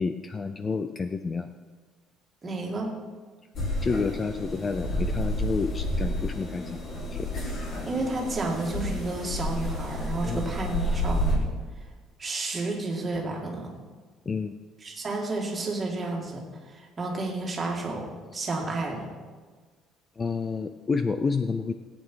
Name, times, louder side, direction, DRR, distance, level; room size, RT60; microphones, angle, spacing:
voice 1, 0.0-1.5 3.8-6.8 7.1-7.3 10.2-10.5 14.3-14.6 20.2-21.7, left 4 dB, 20° left, 9 dB, 0.4 m, -29 dB
voice 2, 2.4-2.9 7.8-11.5 12.2-13.7 14.8-18.1 18.3-19.1, right 2 dB, 20° right, -1 dB, 2.2 m, -31 dB
sound 1, 3.6-11.4, equal, 35° left, 2.4 m, -30 dB
17.0 x 8.7 x 4.6 m, 1.5 s
cardioid pair, 165°, 0 cm